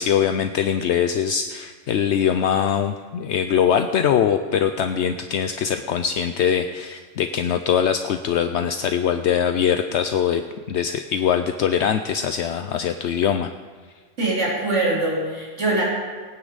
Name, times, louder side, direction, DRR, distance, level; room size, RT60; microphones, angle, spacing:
voice 1, 0.0-10.4 10.7-13.5, left 8 dB, 70° left, 8 dB, 0.9 m, -22 dB
voice 2, 14.2-15.8, right 2 dB, 65° right, -7 dB, 4.1 m, -23 dB
21.0 x 9.5 x 4.0 m, 1.5 s
omnidirectional pair, 1.3 m